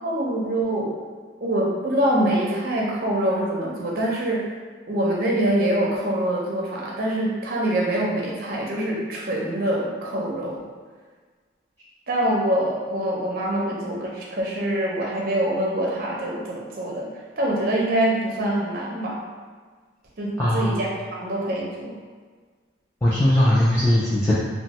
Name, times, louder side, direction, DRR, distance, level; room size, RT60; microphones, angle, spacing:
voice 1, 0.0-1.0 1.4-4.5 4.9-10.6 12.1-17.1 17.4-19.3 20.2-22.0, right 1 dB, 50° right, -3 dB, 0.5 m, -24 dB
voice 2, 20.4-20.8 23.0-24.3, left 1 dB, 15° left, -10 dB, 0.3 m, -19 dB
3.0 x 2.1 x 2.9 m, 1.5 s
head